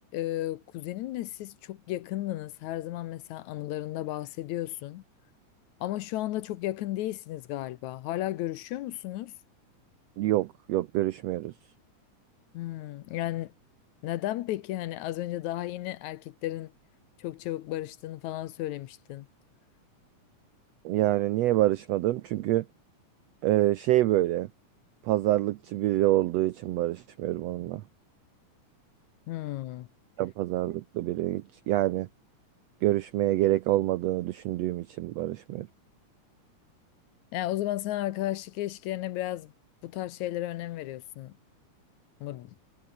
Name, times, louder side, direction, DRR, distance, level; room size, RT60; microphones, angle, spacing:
voice 1, 0.1-5.0 5.8-9.3 12.5-13.5 14.0-16.7 17.2-19.3 29.3-29.9 37.3-39.5 39.8-41.4 42.2-42.6, left 15 dB, 75° left, 2.0 m, -34 dB
voice 2, 10.2-11.5 20.8-22.6 23.4-24.5 25.0-27.8 30.2-32.1 32.8-35.7, right 15 dB, 80° right, 1.5 m, -26 dB
omnidirectional pair, 3.7 m